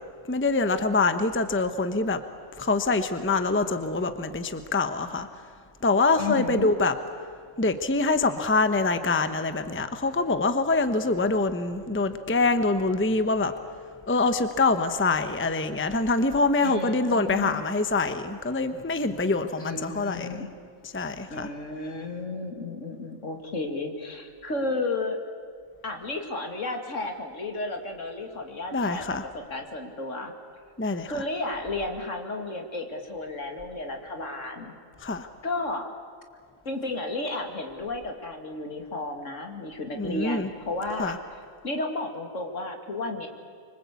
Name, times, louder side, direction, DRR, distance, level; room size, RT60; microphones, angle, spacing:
voice 1, 0.3-2.2 2.6-5.3 5.8-6.9 7.6-13.5 14.1-20.4 20.9-21.5 28.7-29.2 30.8-31.1 35.0-35.3 39.9-40.5 41.0-41.2, left 3 dB, 10° left, 9 dB, 0.9 m, -25 dB
voice 2, 6.2-6.7 16.6-17.7 19.6-20.5 21.3-25.2 25.8-30.3 31.1-34.7 35.4-35.9 36.6-41.2 41.6-43.3, left 2 dB, 65° left, 4 dB, 2.8 m, -33 dB
25.0 x 24.5 x 8.4 m, 2.1 s
omnidirectional pair, 1.4 m